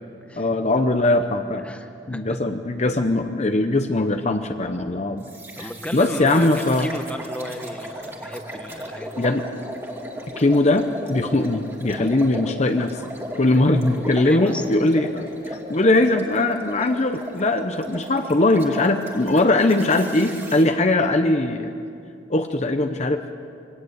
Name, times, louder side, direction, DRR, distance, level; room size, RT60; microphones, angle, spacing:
voice 1, 0.4-1.8 2.1-5.2 5.9-6.9 9.2-9.4 10.4-13.0 13.4-21.7 22.3-23.3, left 2 dB, 40° left, 7 dB, 0.8 m, -20 dB
voice 2, 1.4-2.4 5.6-9.2 14.2-14.6, left 1 dB, 5° left, 6 dB, 1.3 m, -34 dB
sound 1, 5.2-20.7, equal, 15° right, 2.4 m, -36 dB
23.0 x 18.0 x 8.1 m, 2.5 s
head